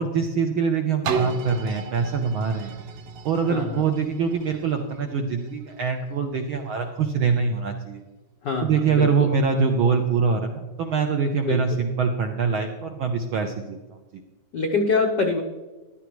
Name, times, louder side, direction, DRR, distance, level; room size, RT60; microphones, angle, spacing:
voice 1, 0.0-2.8 3.2-8.0 8.6-14.0, right 5 dB, 85° right, 4 dB, 1.1 m, -24 dB
sound 1, 1.0-6.8 7.4-7.5, right 4 dB, 65° right, 2.0 m, -34 dB
voice 2, 3.5-3.8 8.4-9.3 11.4-11.6 14.5-15.4, left 4 dB, 85° left, 3 dB, 0.9 m, -24 dB
14.5 x 11.5 x 3.1 m, 1.2 s
omnidirectional pair, 3.4 m